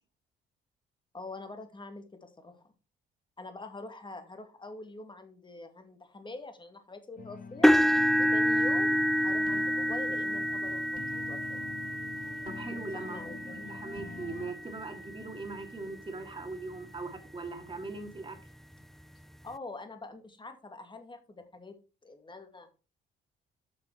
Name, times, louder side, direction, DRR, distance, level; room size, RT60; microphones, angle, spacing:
voice 1, 1.1-2.6 3.4-7.7 8.2-11.6 12.9-13.7 19.4-21.7 22.0-22.7, left 2 dB, 25° left, 7 dB, 2.3 m, -45 dB
sound 1, 7.2-14.5, left 4 dB, 45° left, 1.1 m, -45 dB
sound 2, 7.6-15.7 16.3-16.5 17.0-17.1 18.5-18.6, equal, ahead, 0.3 m, -28 dB
voice 2, 12.4-18.4, right 3 dB, 25° right, 4 dB, 2.6 m, -40 dB
8.5 x 6.2 x 4.6 m, 0.33 s
cardioid pair, 90°, 20 cm